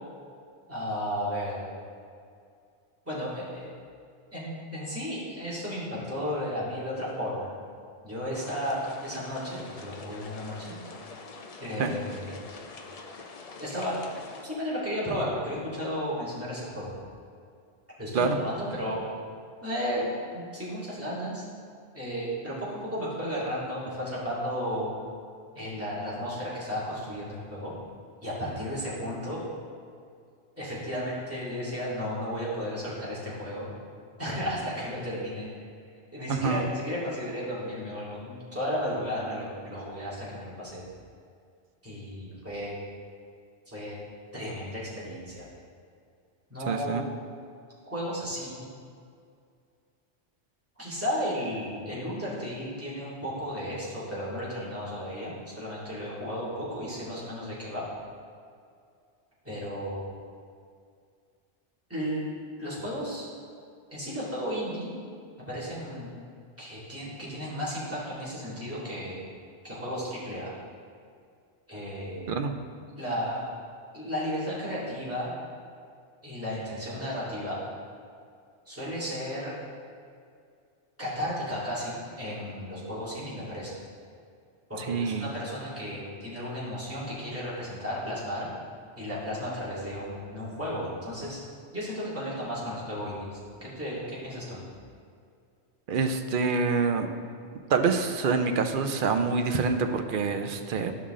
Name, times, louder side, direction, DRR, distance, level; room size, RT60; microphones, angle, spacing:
voice 1, 0.7-1.7 3.0-3.7 4.3-7.5 8.0-10.7 11.6-12.3 13.6-14.0 14.4-16.9 18.0-19.0 19.6-20.1 20.3-21.4 21.9-24.9 25.5-27.7 28.2-29.4 30.6-33.7 34.2-35.5 36.1-40.8 41.8-42.8 43.7-43.9 44.3-45.5 46.5-47.1 47.9-48.7 50.8-57.8 59.4-60.0 61.9-62.2 62.6-63.3 63.9-64.9 65.4-66.2 66.6-69.2 69.6-70.5 71.7-72.4 73.0-73.5 73.9-75.3 76.2-77.6 78.7-79.5 81.0-83.7 84.7-88.5 89.0-91.4 91.7-94.6, equal, 10° right, -9 dB, 2.3 m, -34 dB
sound 1, 8.3-14.4, left 3 dB, 45° left, 0.5 m, -45 dB
voice 2, 36.3-36.6 46.7-47.0 72.3-72.6 84.9-85.3 95.9-97.1 97.7-100.9, right 5 dB, 55° right, 6 dB, 0.7 m, -26 dB
11.5 x 5.6 x 3.7 m, 2.3 s
omnidirectional pair, 1.2 m